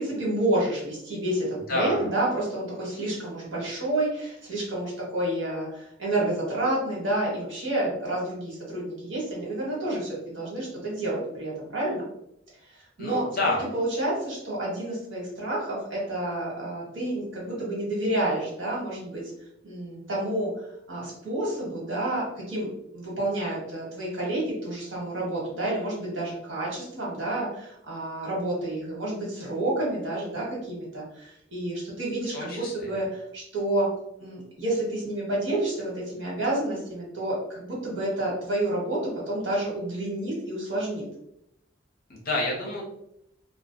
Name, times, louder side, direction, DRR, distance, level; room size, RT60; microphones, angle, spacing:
voice 1, 0.0-12.1 12.7-13.2 13.6-19.2 19.6-20.5 20.9-22.7 22.9-33.9 34.2-41.0, right 1 dB, 80° right, -4 dB, 1.2 m, -29 dB
voice 2, 1.7-2.1 13.0-13.7 32.3-33.0 42.1-42.8, left 2 dB, 50° left, -2 dB, 0.7 m, -28 dB
2.2 x 2.2 x 2.5 m, 0.78 s
head